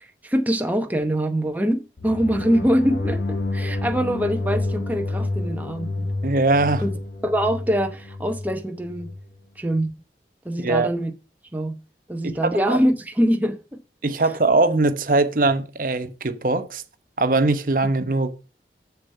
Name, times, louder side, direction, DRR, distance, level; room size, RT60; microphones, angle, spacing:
voice 1, 0.2-6.1 6.8-6.9 7.2-9.1 9.6-9.9 10.4-11.1 11.5-11.8 12.1-13.8, equal, 10° right, 0.8 m, -23 dB
sound 1, 2.0-9.2, left 2 dB, 75° left, 1.0 m, -29 dB
voice 2, 6.2-6.8 10.6-10.9 12.2-12.8 14.0-16.8 17.2-18.3, right 3 dB, 50° right, 0.9 m, -21 dB
7.0 x 6.8 x 5.4 m
head